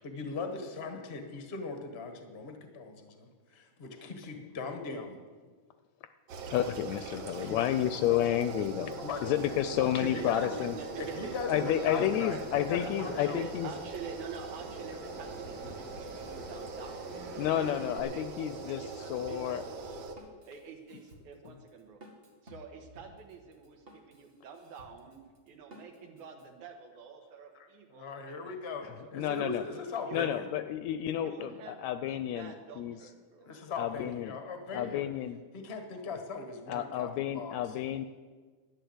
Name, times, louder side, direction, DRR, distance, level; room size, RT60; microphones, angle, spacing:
voice 1, 0.0-5.2 7.4-8.4 9.0-9.5 10.0-10.5 11.0-13.4 27.5-30.5 33.4-35.1 35.5-37.8, left 4 dB, 45° left, 6 dB, 0.7 m, -40 dB
sound 1, 6.3-20.1, right 4 dB, 60° right, 1.4 m, -42 dB
voice 2, 6.5-10.8 11.5-13.7 17.4-19.6 28.8-29.6 30.1-33.0 33.8-34.4 34.7-35.4 36.7-38.0, left 11 dB, 80° left, 11 dB, 1.7 m, -31 dB
Bird vocalization bird call bird song, 9.4-18.0, left 1 dB, 5° left, 1.1 m, -50 dB
voice 3, 9.7-12.4 12.8-18.2 18.6-20.0 20.5-22.0 22.4-25.2 25.5-29.4 29.7-30.3 31.0-31.8 32.2-33.5, right 5 dB, 80° right, 3 dB, 2.7 m, -46 dB
Drum kit, 19.2-26.5, equal, 30° right, 1.2 m, -56 dB
11.5 x 9.5 x 7.9 m, 1.5 s
omnidirectional pair, 3.4 m